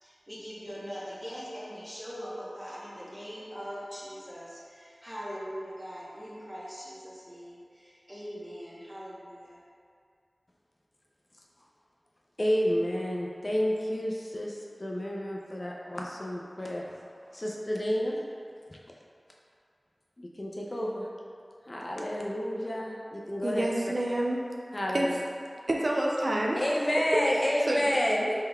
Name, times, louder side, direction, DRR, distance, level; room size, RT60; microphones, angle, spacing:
voice 1, 0.0-9.6, equal, 10° right, -7 dB, 1.0 m, -41 dB
voice 2, 12.4-16.8 17.3-18.2 20.2-21.1 21.7-23.6 24.7-25.2 26.5-28.3, equal, 40° left, -2 dB, 0.4 m, -30 dB
voice 3, 23.4-24.4 24.9-25.1 25.7-26.6 27.7-27.8, right 1 dB, 55° right, -2 dB, 0.4 m, -28 dB
4.2 x 3.7 x 2.3 m, 2.3 s
wide cardioid pair, 50°, 0 cm